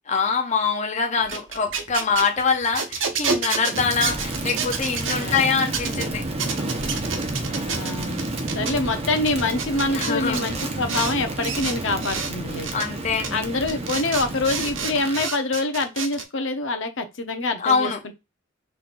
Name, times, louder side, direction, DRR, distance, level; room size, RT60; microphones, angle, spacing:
voice 1, 0.1-6.2 9.9-10.5 12.7-13.4 17.6-18.0, left 5 dB, 35° left, 0.7 m, -24 dB
friction balloon, 1.2-5.2 5.7-6.0 6.4-8.7 9.2-11.1 11.4-12.3 12.6-12.9 13.2-13.3 13.7-16.2, right 5 dB, 75° right, 1.0 m, -29 dB
Crackle, 3.7-15.3, right 2 dB, 30° right, 0.9 m, -30 dB
voice 2, 5.2-5.7 7.7-8.2 8.5-12.7 13.3-18.1, left 2 dB, 75° left, 0.9 m, -26 dB
5.7 x 3.4 x 2.5 m
head